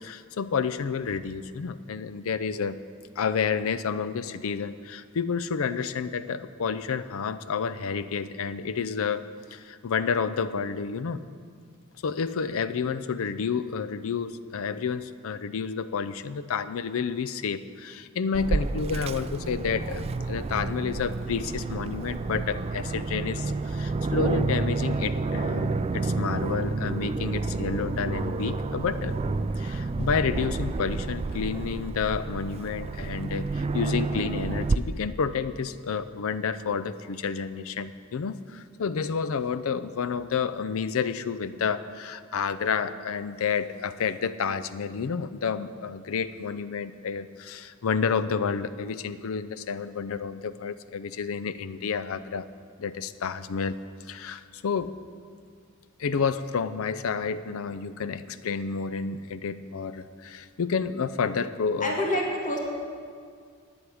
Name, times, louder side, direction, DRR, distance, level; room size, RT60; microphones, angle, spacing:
voice 1, 0.0-2.8 3.2-9.2 9.5-11.2 12.0-29.2 29.6-52.5 52.8-53.8 54.1-54.9 56.0-62.0, left 6 dB, 65° left, 13 dB, 0.5 m, -30 dB
Aircraft, 18.3-34.8, right 3 dB, 30° right, 0.3 m, -30 dB
voice 2, 61.8-62.6, equal, 35° left, -1 dB, 2.1 m, -27 dB
9.6 x 8.0 x 8.6 m, 2.1 s
head